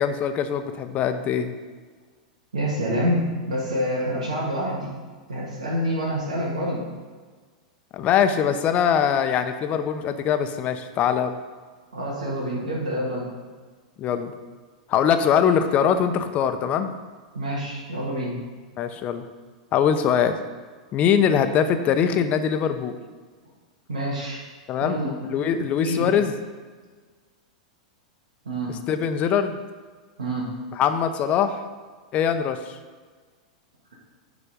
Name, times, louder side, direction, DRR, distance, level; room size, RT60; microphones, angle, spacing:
voice 1, 0.0-1.5 7.9-11.4 14.0-14.3 14.9-16.9 18.8-19.2 19.7-20.4 20.9-23.0 24.7-25.0 25.3-26.3 28.7-29.6 30.7-31.6 32.1-32.8, left 8 dB, 35° left, 8 dB, 0.8 m, -22 dB
voice 2, 2.5-4.9 5.3-6.9 11.9-13.3 17.3-18.4 23.9-24.4 24.8-25.1 25.6-26.1 28.5-28.7 30.2-30.5, equal, 85° right, -6 dB, 1.8 m, -27 dB
9.9 x 4.1 x 5.1 m, 1.5 s
hypercardioid pair, 105°, 4 cm